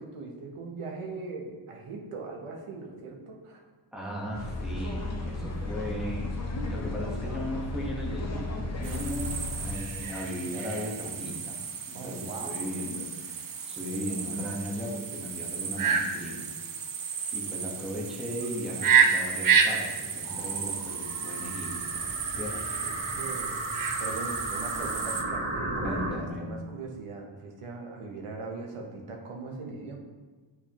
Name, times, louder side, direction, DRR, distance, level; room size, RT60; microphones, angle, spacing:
voice 1, 0.0-3.6 11.9-12.5 22.8-23.5 24.0-30.0, right 3 dB, 90° right, 1 dB, 1.0 m, -40 dB
voice 2, 3.9-6.3 6.7-11.6 11.9-16.5 17.3-22.0 22.3-22.8 25.7-26.5, equal, ahead, -4 dB, 1.1 m, -37 dB
sound 1, 4.3-9.8, left 2 dB, 30° left, 0.8 m, -34 dB
sound 2, 8.8-25.2, right 6 dB, 45° right, 0.5 m, -30 dB
sound 3, 20.2-26.1, right 2 dB, 65° right, 1.3 m, -35 dB
8.5 x 4.7 x 3.0 m, 1.4 s
wide cardioid pair, 165°, 50 cm